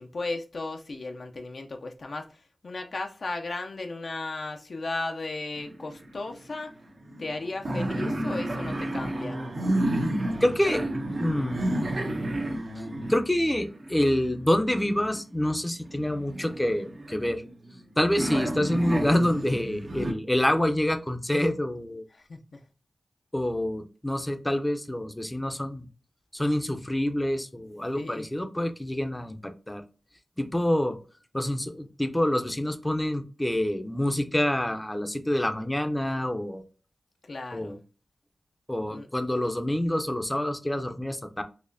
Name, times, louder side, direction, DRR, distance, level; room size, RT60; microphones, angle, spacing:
voice 1, 0.0-6.7 7.2-9.4 22.1-22.6 27.9-28.3 37.3-37.8 38.9-39.1, left 2 dB, 65° left, 0.5 m, -35 dB
sound 1, 5.6-6.3 6.6-6.7 7.0-15.2 15.9-17.8 18.2-20.1, right 1 dB, 60° right, 0.7 m, -31 dB
voice 2, 10.4-10.9 11.2-11.7 13.1-17.4 18.0-22.0 23.3-25.9 26.3-29.8 30.4-31.0 31.3-36.6 37.5-37.8 38.7-41.4, left 1 dB, 15° left, 0.6 m, -27 dB
4.1 x 2.8 x 2.6 m
cardioid pair, 45°, 0 cm